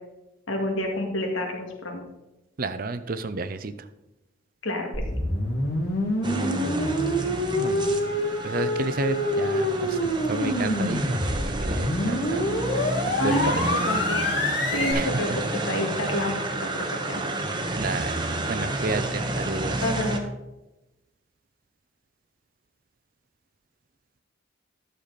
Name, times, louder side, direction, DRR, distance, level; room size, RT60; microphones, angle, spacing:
voice 1, 0.5-2.0 4.6-5.0 13.2-13.5 13.9-14.4 14.7-17.2 19.8-20.4, left 1 dB, 80° left, 2 dB, 2.1 m, -29 dB
voice 2, 2.6-3.7 7.6-8.0 8.4-10.0 10.3-12.4 13.1-13.7 14.9-15.1 17.8-19.8, right 3 dB, 45° right, 12 dB, 0.5 m, -31 dB
sound 1, 4.9-14.9, left 1 dB, 55° left, 2.3 m, -26 dB
sound 2, 6.2-20.2, right 2 dB, 20° right, 0.9 m, -30 dB
11.5 x 6.9 x 4.1 m, 0.96 s
head